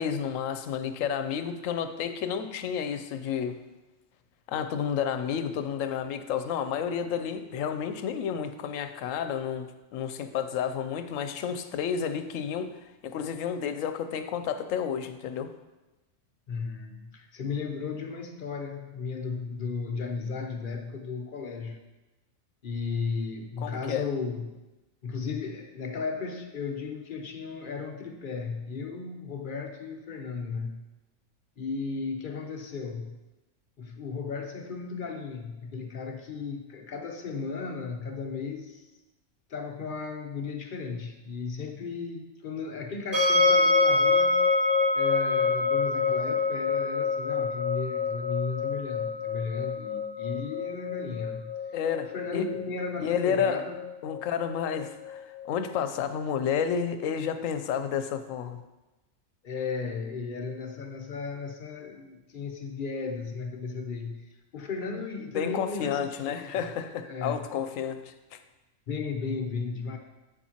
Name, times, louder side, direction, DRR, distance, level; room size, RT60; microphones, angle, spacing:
voice 1, 0.0-3.6 4.5-12.7 13.0-15.5 23.6-24.1 51.7-52.5 53.0-53.6 54.0-58.6 65.3-68.4, left 7 dB, 85° left, 9 dB, 1.0 m, -31 dB
voice 2, 16.5-21.8 22.6-24.6 25.0-30.9 31.6-33.2 33.8-38.9 39.5-44.4 44.9-51.6 52.1-53.8 59.4-66.0 66.3-66.6 67.0-67.5 68.9-70.0, left 4 dB, 50° left, 3 dB, 0.7 m, -35 dB
sound 1, 43.1-56.1, left 3 dB, 45° right, 2.8 m, -27 dB
8.4 x 7.2 x 2.9 m, 1.1 s
omnidirectional pair, 1.3 m